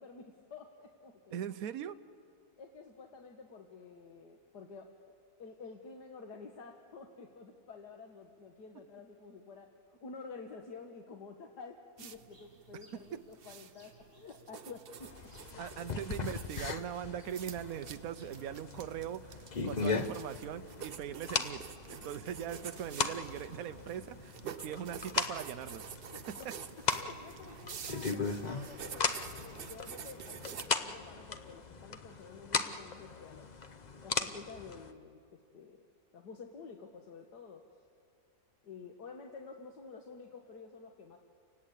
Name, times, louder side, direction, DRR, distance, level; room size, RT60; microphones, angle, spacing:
voice 1, 0.0-1.5 2.6-4.9 5.4-15.9 26.1-26.5 26.9-33.5 34.0-35.8 36.1-37.6 38.6-41.2, left 4 dB, 80° left, 2 dB, 1.9 m, -50 dB
voice 2, 1.3-2.0 15.6-21.6 21.9-25.9 26.3-26.4, right 9 dB, 65° right, 10 dB, 1.2 m, -40 dB
sound 1, 12.0-30.7, right 7 dB, 50° right, 0.7 m, -49 dB
sound 2, 12.3-18.3, equal, 35° right, 4.7 m, -67 dB
sound 3, 15.0-34.9, left 4 dB, 40° left, 0.7 m, -38 dB
30.0 x 19.0 x 8.3 m, 2.5 s
omnidirectional pair, 1.7 m